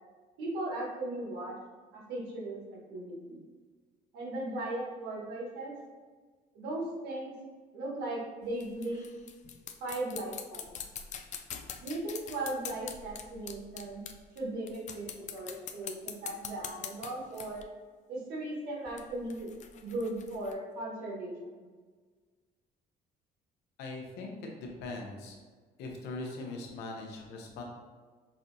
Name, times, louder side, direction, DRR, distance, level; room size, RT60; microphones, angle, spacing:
voice 1, 0.4-1.6 1.9-3.4 4.1-5.7 6.5-7.3 7.7-9.1 9.8-10.6 11.8-14.0 14.3-17.6 18.1-19.5 19.8-21.3, right 2 dB, 80° right, -4 dB, 1.3 m, -37 dB
sound 1, 8.4-14.4 14.7-17.6 18.9-20.5, left 8 dB, 45° left, 0.4 m, -44 dB
voice 2, 23.8-25.4 25.8-27.6, left 2 dB, 85° left, 1 dB, 0.8 m, -41 dB
5.4 x 2.7 x 2.6 m, 1.5 s
cardioid pair, 110°, 17 cm